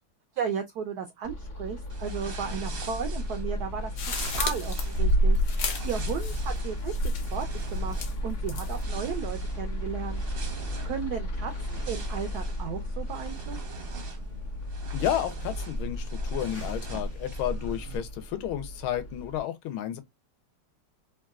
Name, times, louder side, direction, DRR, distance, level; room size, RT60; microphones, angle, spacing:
voice 1, 0.3-3.9 4.2-10.2 10.8-13.7, right 7 dB, 85° right, 0.8 m, -35 dB
sound 1, 1.2-19.4, left 1 dB, 45° left, 0.8 m, -36 dB
sound 2, 1.9-18.0, equal, 55° right, 0.6 m, -37 dB
sound 3, 4.0-6.6 6.9-7.4 7.9-8.8, equal, 65° left, 1.2 m, -28 dB
voice 2, 14.9-20.0, left 11 dB, 85° left, 1.5 m, -32 dB
3.7 x 2.3 x 2.3 m
omnidirectional pair, 2.3 m